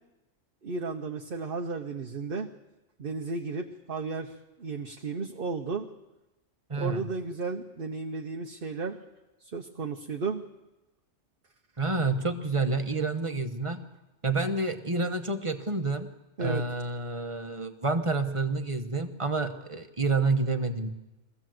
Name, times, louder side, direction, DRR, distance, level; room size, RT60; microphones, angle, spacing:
voice 1, 0.6-2.5 3.0-4.3 4.6-5.9 6.7-9.0 9.5-10.4 16.4-16.6, right 4 dB, 45° right, 3 dB, 1.1 m, -33 dB
voice 2, 6.7-7.1 11.8-13.8 14.2-16.1 16.4-20.9, right 3 dB, 25° right, 7 dB, 1.2 m, -29 dB
22.5 x 15.5 x 7.8 m, 1.0 s
omnidirectional pair, 1.3 m